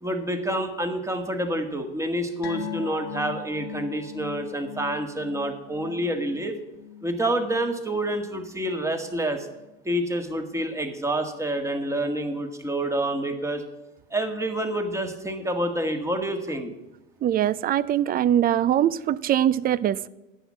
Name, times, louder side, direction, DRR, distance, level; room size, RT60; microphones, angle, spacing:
voice 1, 0.0-6.6 7.0-9.5 9.9-13.6 14.1-16.7, right 1 dB, 10° right, 1.7 m, -28 dB
sound 1, 2.4-9.2 9.5-9.7 10.1-10.2, left 9 dB, 70° left, 1.3 m, -40 dB
voice 2, 17.2-20.1, right 11 dB, 30° right, 0.4 m, -22 dB
10.0 x 7.4 x 7.2 m
hypercardioid pair, 85°, 32 cm